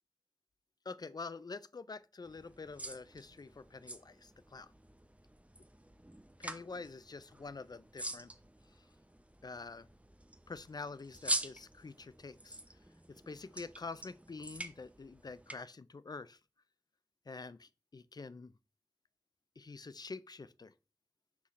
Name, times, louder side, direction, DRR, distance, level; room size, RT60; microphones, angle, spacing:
voice 1, 0.8-4.7 6.4-8.3 8.7-8.9 9.4-9.9 10.5-12.6 13.1-16.4 17.3-18.5 19.6-20.7, left 4 dB, 70° left, 0.5 m, -47 dB
sound 1, 2.2-15.6, right 1 dB, 20° right, 0.8 m, -45 dB
6.1 x 5.6 x 3.2 m
wide cardioid pair, 50°, 7 cm